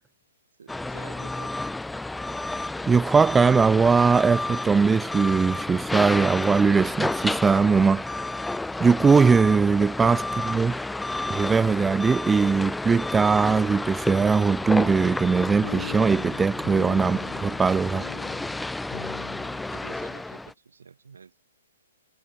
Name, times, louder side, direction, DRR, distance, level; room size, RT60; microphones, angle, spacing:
voice 1, 0.6-1.6 10.3-10.4 19.7-21.4, right 6 dB, 75° right, 6.0 m, -49 dB
Forklift reverse beeping, 0.7-20.5, left 2 dB, 5° left, 0.9 m, -31 dB
voice 2, 2.9-8.0 8.8-10.8 11.3-18.1, right 5 dB, 10° right, 0.5 m, -20 dB
sound 1, 14.6-20.1, left 11 dB, 55° left, 3.4 m, -41 dB
hypercardioid pair, 125°, 0 cm